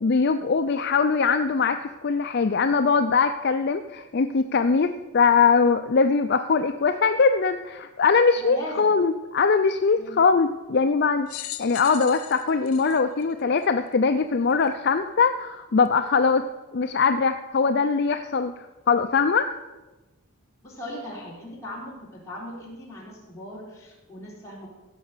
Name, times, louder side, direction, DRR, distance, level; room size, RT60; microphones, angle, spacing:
voice 1, 0.0-11.3 11.6-16.4 16.7-18.5 18.9-19.5, left 5 dB, 50° left, 8 dB, 0.4 m, -21 dB
voice 2, 8.4-8.9 10.0-10.2 20.6-24.7, left 1 dB, 15° left, -6 dB, 3.7 m, -38 dB
sound 1, 11.3-13.9 14.6-14.7 15.9-16.0, left 14 dB, 80° left, 0.7 m, -39 dB
16.0 x 5.5 x 6.6 m, 1.1 s
head